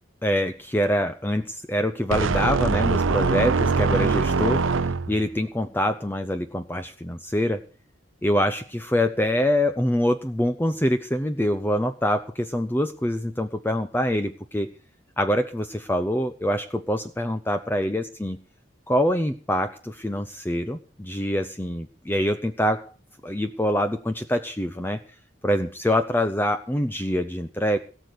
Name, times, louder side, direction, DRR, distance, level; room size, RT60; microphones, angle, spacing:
voice 1, 0.2-4.6 5.1-7.6 8.2-14.7 15.2-18.4 18.9-22.9 23.2-25.0 25.4-27.8, equal, 10° left, 8 dB, 0.6 m, -25 dB
sound 1, 2.1-5.3, right 4 dB, 80° right, 0.6 m, -23 dB
18.0 x 6.8 x 7.8 m, 0.39 s
head